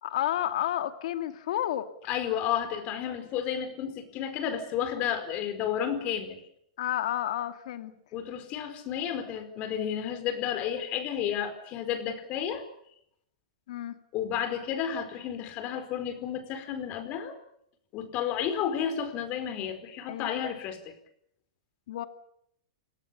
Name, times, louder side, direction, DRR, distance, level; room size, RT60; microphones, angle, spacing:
voice 1, 0.0-1.9 6.8-7.9 13.7-13.9 20.1-20.4 21.9-22.0, left 12 dB, 65° left, 9 dB, 2.5 m, -31 dB
voice 2, 2.1-6.4 8.1-12.6 14.1-17.4 17.9-20.9, left 9 dB, 40° left, 10 dB, 4.6 m, -32 dB
29.0 x 18.5 x 7.0 m, 0.71 s
hypercardioid pair, 135°, 4 cm